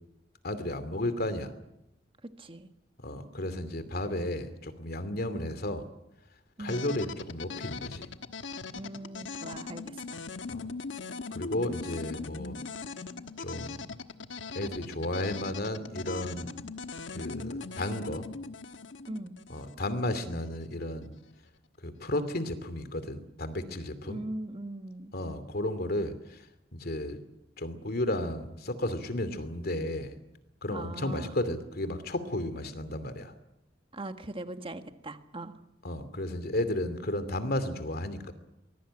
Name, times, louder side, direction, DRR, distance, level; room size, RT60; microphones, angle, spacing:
voice 1, 0.4-1.5 3.0-5.8 6.6-8.1 10.5-10.6 11.3-12.6 13.4-13.8 14.5-16.5 17.1-18.3 19.5-21.1 21.8-24.2 25.1-26.5 26.7-27.2 27.6-30.2 30.6-33.3 35.8-38.3, left 1 dB, 55° left, 11 dB, 2.7 m, -33 dB
voice 2, 2.2-2.7 5.3-5.6 6.6-7.0 8.7-10.2 12.1-12.3 19.0-19.4 24.1-25.2 30.7-31.4 33.9-35.5, right 2 dB, 30° right, 8 dB, 1.6 m, -40 dB
sound 1, 6.7-20.6, left 4 dB, 75° left, 1.3 m, -40 dB
24.5 x 21.0 x 8.9 m, 0.88 s
head